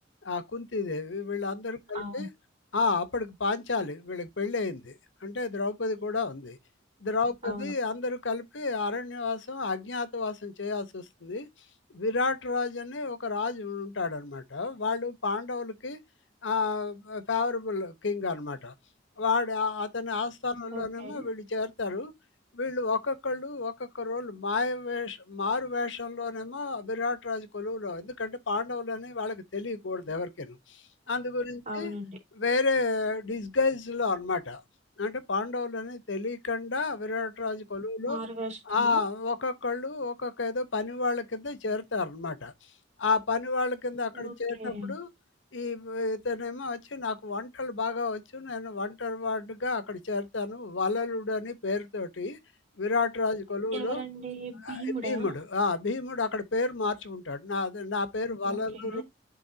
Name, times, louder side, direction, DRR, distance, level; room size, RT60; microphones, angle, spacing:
voice 1, 0.2-2.3 2.7-6.6 7.0-11.5 11.9-16.0 16.4-18.7 19.2-22.1 22.5-31.9 32.4-34.6 35.0-38.2 38.7-42.5 43.0-45.1 45.5-52.4 52.8-54.0 54.6-59.0, left 3 dB, 80° left, 1.1 m, -31 dB
voice 2, 1.9-2.3 7.4-7.7 20.7-21.3 31.7-32.2 38.0-39.0 44.1-45.0 53.7-55.3 58.4-59.0, right 1 dB, 40° right, 3.0 m, -37 dB
11.0 x 3.8 x 2.7 m
head